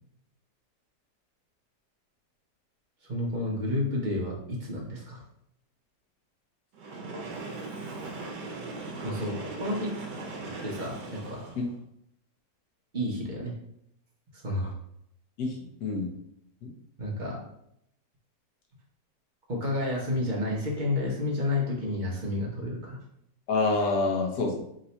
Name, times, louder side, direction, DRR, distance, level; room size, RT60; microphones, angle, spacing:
voice 1, 3.1-5.2 9.0-9.9 10.4-11.4 12.9-13.5 14.4-14.7 17.0-17.4 19.5-23.0, left 1 dB, 40° right, -3 dB, 0.7 m, -30 dB
Train, 6.7-11.8, right 3 dB, 70° right, 1.2 m, -39 dB
voice 2, 15.4-16.1 16.6-16.7 23.5-24.6, left 3 dB, 65° left, 0 dB, 1.3 m, -27 dB
3.7 x 2.7 x 4.3 m, 0.74 s
omnidirectional pair, 1.9 m